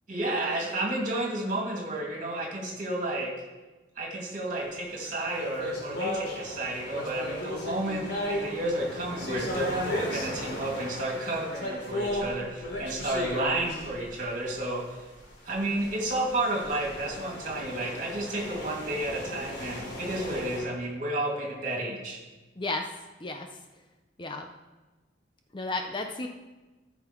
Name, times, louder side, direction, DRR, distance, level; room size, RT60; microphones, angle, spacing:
voice 1, 0.1-3.3 4.0-15.0 15.4-22.2, right 1 dB, 45° right, -1 dB, 2.4 m, -31 dB
sound 1, 5.0-14.7 15.5-20.6, left 1 dB, 60° left, 3.3 m, -35 dB
voice 2, 25.5-26.3, left 2 dB, 25° left, 5 dB, 0.6 m, -32 dB
14.0 x 5.8 x 4.5 m, 1.1 s
head